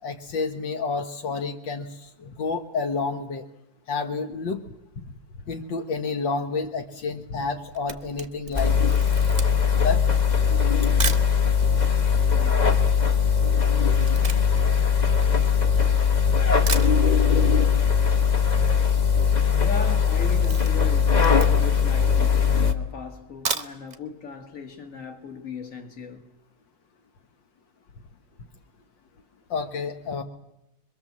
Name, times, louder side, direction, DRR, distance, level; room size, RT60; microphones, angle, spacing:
voice 1, 0.0-3.5 3.9-4.6 5.5-8.8 9.8-10.0 29.5-30.2, left 4 dB, 75° left, 1.9 m, -29 dB
Camera, 7.6-11.3 12.0-12.1 12.3-16.0 16.4-16.5 16.7-17.5 17.8-17.9 18.2-18.3 18.4-18.9 19.2-19.4 19.8-21.8 22.3-22.4 23.2-24.0 24.4-24.5 24.8-24.9, right 4 dB, 30° right, 0.9 m, -34 dB
sound 1, 8.5-22.7, left 6 dB, 25° left, 1.2 m, -20 dB
voice 2, 12.2-12.8 19.6-26.2, left 6 dB, 45° left, 2.2 m, -38 dB
25.0 x 22.5 x 7.3 m
omnidirectional pair, 2.0 m